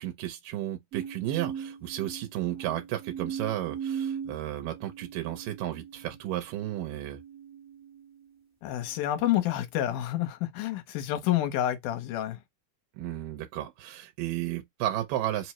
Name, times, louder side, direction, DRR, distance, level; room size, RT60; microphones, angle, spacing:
voice 1, 0.0-7.2 13.0-15.5, right 13 dB, 85° right, 2.4 m, -33 dB
sound 1, 0.9-8.3 9.0-9.5, right 8 dB, 55° right, 0.9 m, -40 dB
voice 2, 8.6-12.4, left 12 dB, 75° left, 2.2 m, -28 dB
5.2 x 2.1 x 2.9 m
omnidirectional pair, 3.8 m